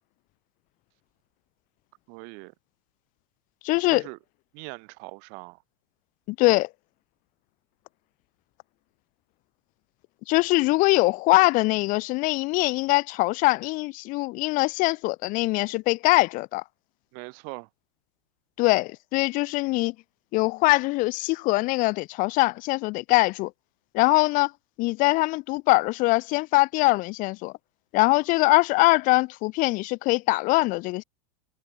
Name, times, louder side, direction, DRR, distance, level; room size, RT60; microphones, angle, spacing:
voice 1, 2.1-2.5 3.9-4.2 4.5-5.6 17.1-17.7, right 40 dB or more, 55° right, 7.8 m, -41 dB
voice 2, 3.6-4.0 6.4-6.7 10.3-16.6 18.6-19.9 20.3-23.5 23.9-24.5 24.8-27.5 27.9-31.0, left 22 dB, 45° left, 1.2 m, -22 dB
hypercardioid pair, 120°, 19 cm